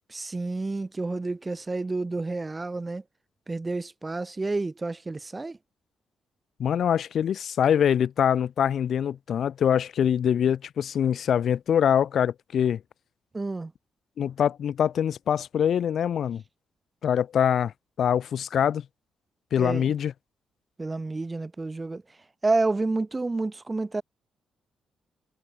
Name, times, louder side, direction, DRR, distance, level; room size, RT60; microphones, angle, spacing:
voice 1, 0.1-3.0 3.5-5.6 13.3-13.7 19.6-19.9 20.8-22.0 22.4-24.0, right 3 dB, 20° right, 3.0 m, -29 dB
voice 2, 6.6-12.8 14.2-16.4 17.0-17.7 18.0-18.8 19.5-20.1, left 9 dB, 60° left, 1.1 m, -24 dB
cardioid pair, 115°, 0 cm